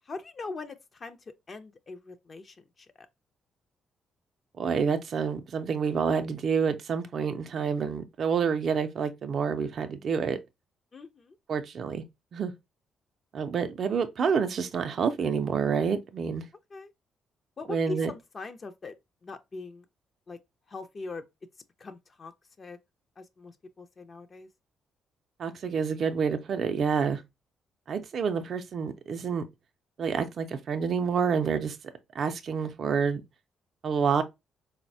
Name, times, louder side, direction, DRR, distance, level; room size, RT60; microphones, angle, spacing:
voice 1, 0.0-3.1 10.9-11.4 16.7-16.9 17.6-19.0 19.2-19.9 20.3-20.4 20.7-21.2 21.8-22.3 22.6-22.8 23.2-24.5, left 3 dB, 40° left, 0.4 m, -41 dB
voice 2, 4.6-10.4 11.5-12.0 12.3-12.5 13.3-16.4 17.7-18.1 25.4-27.2 27.9-29.4 30.0-31.8 32.2-33.2 33.8-34.2, right 6 dB, 55° right, 0.4 m, -28 dB
3.9 x 2.1 x 2.5 m
cardioid pair, 90°, 0 cm